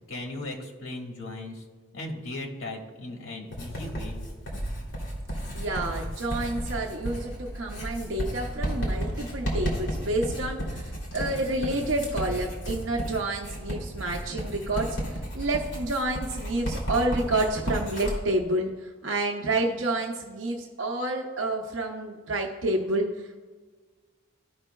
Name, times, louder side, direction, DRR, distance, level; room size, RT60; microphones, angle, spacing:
voice 1, 0.0-1.6 1.9-4.3, left 2 dB, 90° left, 1 dB, 1.5 m, -37 dB
Writing, 3.5-18.2, equal, 60° left, 2.4 m, -33 dB
voice 2, 5.5-23.4, right 2 dB, 65° right, 1 dB, 0.7 m, -29 dB
14.0 x 5.4 x 2.2 m, 1.4 s
head